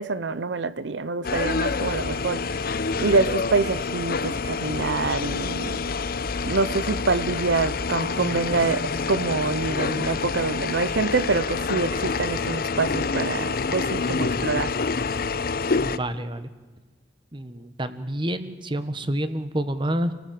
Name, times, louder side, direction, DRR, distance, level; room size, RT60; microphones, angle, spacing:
voice 1, 0.0-2.6 3.0-5.8 6.4-14.7, right 4 dB, 85° right, 15 dB, 0.7 m, -26 dB
sound 1, 1.2-16.0, left 4 dB, 55° left, 0.7 m, -27 dB
voice 2, 15.8-16.5 17.3-20.1, right 1 dB, 25° right, 11 dB, 1.4 m, -28 dB
29.0 x 18.5 x 7.7 m, 1.4 s
head